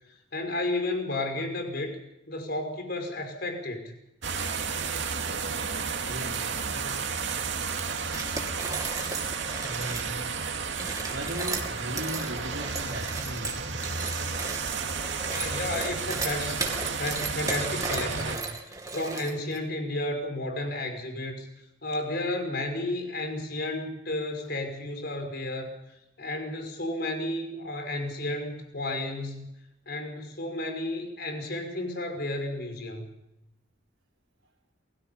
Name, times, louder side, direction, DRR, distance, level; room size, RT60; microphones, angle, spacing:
voice 1, 0.3-2.0 2.3-3.9 15.0-21.5 21.8-25.7 26.2-29.5 29.9-33.2, left 2 dB, 55° left, 5 dB, 5.5 m, -32 dB
sound 1, 4.2-18.4, right 5 dB, 70° right, 2.5 m, -32 dB
voice 2, 6.1-7.0 9.3-10.2 11.1-13.8, equal, 90° right, -4 dB, 4.5 m, -38 dB
sound 2, 8.1-10.1 10.7-19.6, right 3 dB, 20° right, 2.5 m, -35 dB
28.0 x 17.0 x 5.7 m, 0.86 s
head